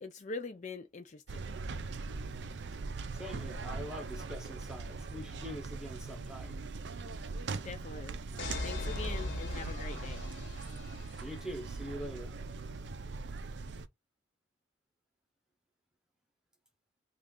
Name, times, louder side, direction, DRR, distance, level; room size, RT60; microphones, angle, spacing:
voice 1, 0.0-1.4 7.6-8.2 8.6-10.2, left 3 dB, 40° left, 0.4 m, -43 dB
sound 1, 1.3-13.9, right 4 dB, 65° right, 0.5 m, -41 dB
voice 2, 3.1-6.6 11.2-12.3, equal, 5° right, 0.8 m, -44 dB
sound 2, 8.4-11.3, left 1 dB, 70° left, 0.9 m, -39 dB
3.2 x 2.4 x 3.7 m
head